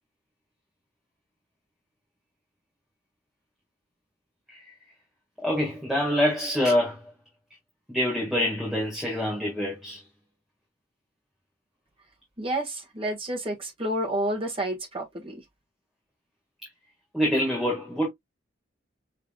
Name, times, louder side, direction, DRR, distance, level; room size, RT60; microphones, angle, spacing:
voice 1, 5.4-7.1 7.9-10.0 17.1-18.1, left 1 dB, ahead, 1.9 m, -26 dB
voice 2, 12.4-15.4, right 1 dB, 30° right, 1.5 m, -30 dB
5.7 x 3.8 x 2.3 m
head